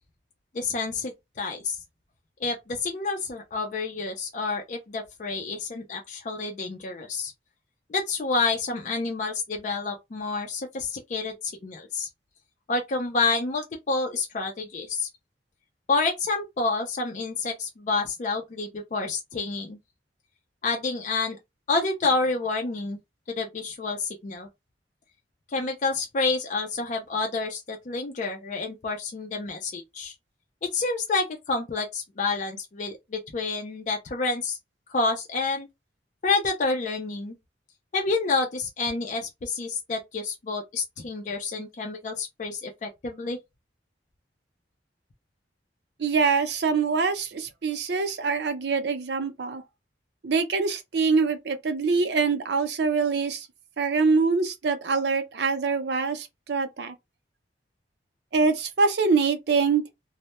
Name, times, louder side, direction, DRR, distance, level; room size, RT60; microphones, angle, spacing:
voice 1, 0.5-1.8 2.4-7.3 7.9-12.1 12.7-15.1 15.9-19.8 20.6-21.4 21.7-23.0 23.3-24.5 25.5-30.1 30.7-34.6 34.9-35.7 36.2-37.3 37.9-43.4, left 3 dB, 45° left, 0.4 m, -29 dB
voice 2, 46.0-49.6 50.2-53.5 53.8-56.9 58.3-59.8, right 4 dB, 65° right, 0.5 m, -24 dB
2.1 x 2.0 x 2.8 m
head